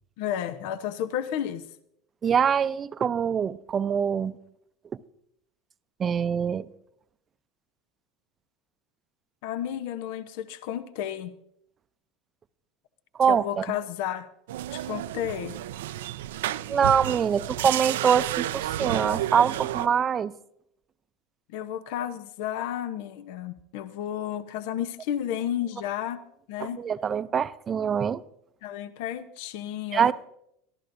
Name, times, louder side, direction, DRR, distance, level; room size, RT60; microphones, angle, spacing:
voice 1, 0.2-1.6 9.4-11.3 13.3-14.3 14.7-15.6 21.5-26.2 26.5-26.8 28.6-30.1, left 10 dB, 70° left, 0.8 m, -32 dB
voice 2, 2.2-4.4 6.0-6.7 13.2-13.7 16.7-20.3 26.6-28.2 29.9-30.1, right 7 dB, 35° right, 0.6 m, -24 dB
sound 1, 14.5-19.9, right 13 dB, 80° right, 0.4 m, -31 dB
23.0 x 14.0 x 2.6 m
hypercardioid pair, 85°, 0 cm